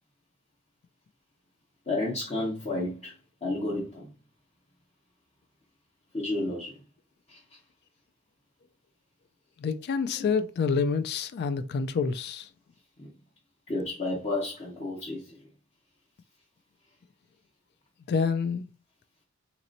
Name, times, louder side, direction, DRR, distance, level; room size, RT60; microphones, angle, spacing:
voice 1, 1.9-3.1 3.4-4.1 6.1-6.8 7.3-7.4 10.2-10.3 13.0-13.1 13.7-15.3, left 2 dB, 30° left, 1.2 m, -31 dB
voice 2, 9.6-12.5 18.1-18.6, left 5 dB, 50° left, 0.3 m, -27 dB
4.1 x 2.9 x 2.6 m
head